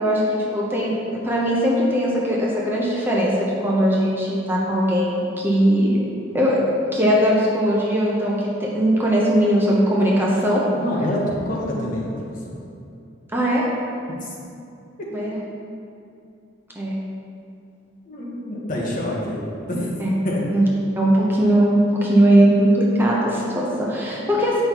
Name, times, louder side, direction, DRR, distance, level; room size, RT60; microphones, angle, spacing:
voice 1, 0.0-6.0 6.3-10.6 13.3-13.6 15.1-15.4 16.8-16.9 20.0-20.1 20.5-20.6 21.0-24.6, equal, 10° right, -5 dB, 0.8 m, -19 dB
voice 2, 10.7-12.6 14.2-14.4 15.0-15.1 18.1-19.9 20.2-20.4 24.1-24.4, left 1 dB, 45° left, -4 dB, 1.2 m, -27 dB
8.4 x 5.7 x 3.0 m, 2.6 s
head